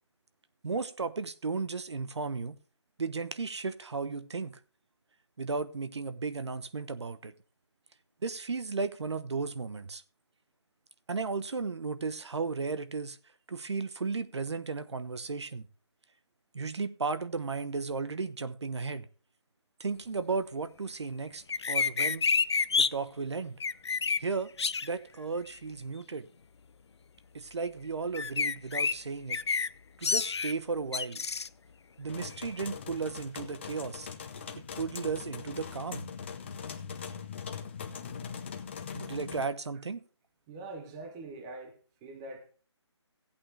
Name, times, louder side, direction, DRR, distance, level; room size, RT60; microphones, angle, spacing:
voice 1, 0.6-2.6 3.0-4.6 5.4-7.3 8.2-10.0 11.1-13.2 13.5-15.6 16.5-19.1 19.8-22.3 22.8-23.6 24.2-24.5 24.8-26.3 27.3-29.4 30.0-31.2 32.0-34.1 34.5-36.1 38.9-40.0, right 4 dB, 65° right, 1.1 m, -34 dB
sound 1, 21.5-22.9 23.6-24.2 24.6-24.9 28.1-28.9 29.3-29.7 30.0-30.5 30.9-31.5, left 5 dB, 65° left, 0.6 m, -28 dB
sound 2, 32.1-39.5, left 6 dB, 25° left, 0.8 m, -41 dB
voice 2, 40.5-42.5, right 2 dB, 10° right, 0.5 m, -44 dB
15.5 x 8.6 x 3.3 m
hypercardioid pair, 170°, 15 cm